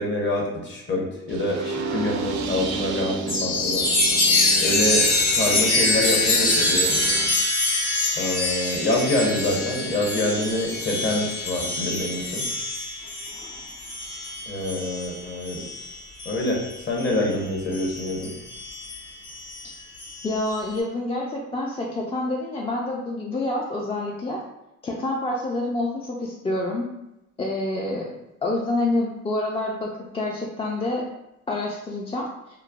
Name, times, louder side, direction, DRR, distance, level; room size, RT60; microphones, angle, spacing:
voice 1, 0.0-3.9 4.6-7.0 8.1-12.4 14.5-15.6 16.2-18.3, left 1 dB, 40° left, -1 dB, 0.8 m, -26 dB
sound 1, 1.3-7.3, right 3 dB, 75° right, 0.5 m, -32 dB
Chime, 3.3-17.3 17.7-20.5, left 2 dB, 60° left, 1.3 m, -25 dB
voice 2, 20.2-24.4 24.8-26.8 27.4-28.1 28.4-31.1 31.5-32.3, left 2 dB, 20° left, -2 dB, 0.3 m, -27 dB
3.1 x 2.0 x 2.3 m, 0.88 s
cardioid pair, 90°, 30 cm